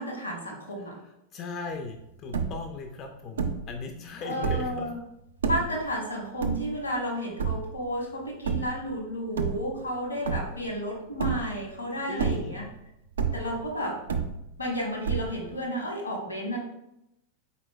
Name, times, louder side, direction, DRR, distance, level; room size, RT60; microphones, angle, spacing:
voice 1, 0.0-0.9 4.2-5.0 5.5-12.7 13.3-14.0 14.6-16.6, equal, 80° left, -1 dB, 1.2 m, -32 dB
voice 2, 1.0-4.9 10.3-10.5 12.1-12.6 13.5-13.6, left 4 dB, 35° left, 4 dB, 0.4 m, -38 dB
sound 1, 1.9-2.0 2.1-2.8 3.4-3.8 4.3-4.8 5.4-5.8 6.4-7.0 7.4-7.9 8.4-8.8 9.3-10.0 10.3-10.8 11.2-11.7 12.1-12.7 13.2-13.7 14.1-14.7 15.0-15.6, right 6 dB, 70° right, 0.4 m, -29 dB
4.2 x 4.0 x 2.2 m, 0.84 s
figure-of-eight pair, 90°, 0 cm